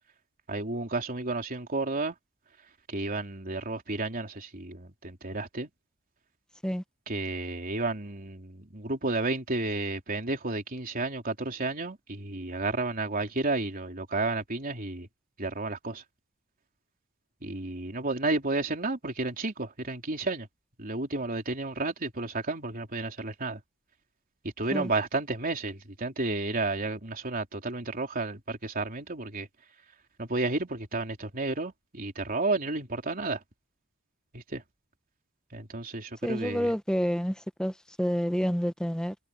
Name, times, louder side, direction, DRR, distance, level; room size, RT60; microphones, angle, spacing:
voice 1, 0.5-2.2 2.9-5.7 7.1-15.1 15.4-16.0 17.4-20.5 20.8-23.6 24.4-29.5 30.2-33.4 34.3-34.6 35.5-36.7, right 3 dB, 45° right, 3.5 m, -32 dB
voice 2, 36.2-37.7 38.0-39.1, equal, 5° left, 1.3 m, -28 dB
head